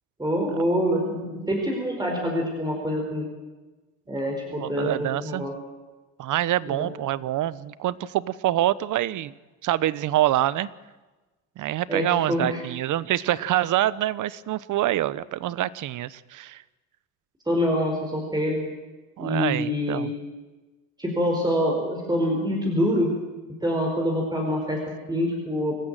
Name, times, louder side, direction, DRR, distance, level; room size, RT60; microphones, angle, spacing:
voice 1, 0.2-3.3 4.1-5.5 6.7-6.9 11.9-12.6 17.4-18.6 19.2-20.1 21.0-23.1 23.6-24.8 25.1-25.8, equal, 10° right, 0 dB, 4.8 m, -25 dB
voice 2, 4.6-5.4 6.2-9.3 9.6-10.7 11.6-16.6 19.2-20.1, right 13 dB, 50° right, 18 dB, 0.9 m, -26 dB
25.5 x 14.5 x 9.1 m, 1.2 s
cardioid pair, 115°, 38 cm